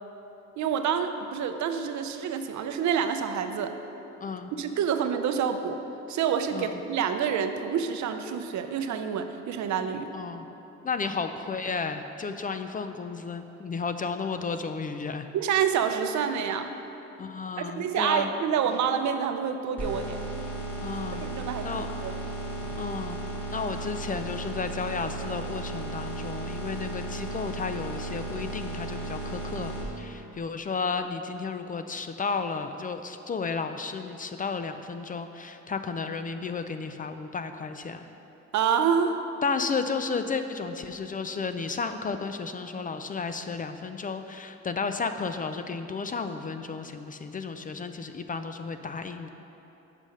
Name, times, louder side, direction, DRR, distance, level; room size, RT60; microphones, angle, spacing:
voice 1, 0.6-3.7 4.6-5.8 6.1-10.1 15.3-16.7 17.6-20.2 21.2-22.2 38.5-39.2, right 7 dB, 70° right, 7 dB, 0.6 m, -27 dB
voice 2, 4.2-4.5 6.5-6.7 10.1-10.4 10.8-15.3 17.2-18.3 20.8-21.3 21.6-21.9 22.8-23.2 23.5-38.1 39.4-49.3, left 4 dB, 30° left, 8 dB, 0.4 m, -33 dB
sound 1, 19.8-29.8, right 2 dB, 5° left, 1.7 m, -35 dB
7.5 x 5.0 x 6.3 m, 3.0 s
cardioid pair, 90°, 30 cm